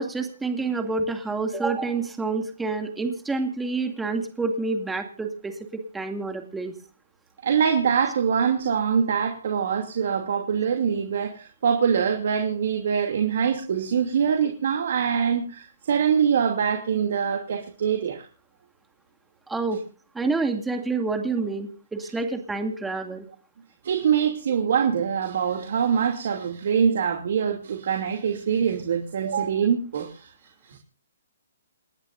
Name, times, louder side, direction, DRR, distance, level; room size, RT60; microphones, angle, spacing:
voice 1, 0.0-6.7 19.5-19.8 20.1-23.2, right 3 dB, 5° right, 5 dB, 2.3 m, -28 dB
voice 2, 7.4-18.2 23.8-30.3 30.7-30.8, right 7 dB, 60° right, 3 dB, 2.7 m, -24 dB
28.5 x 11.0 x 2.6 m, 0.39 s
hypercardioid pair, 145°, 0 cm